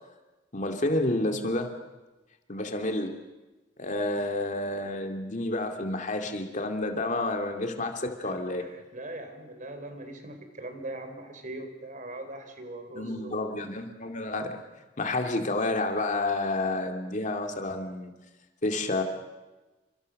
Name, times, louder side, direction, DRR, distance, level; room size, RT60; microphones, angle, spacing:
voice 1, 0.5-1.7 2.5-3.1 3.8-8.6 12.9-14.6 15.0-18.1 18.6-19.0, left 2 dB, 40° left, 5 dB, 2.3 m, -29 dB
voice 2, 8.2-13.5, right 1 dB, 45° right, 7 dB, 4.4 m, -41 dB
30.0 x 26.0 x 6.5 m, 1.1 s
head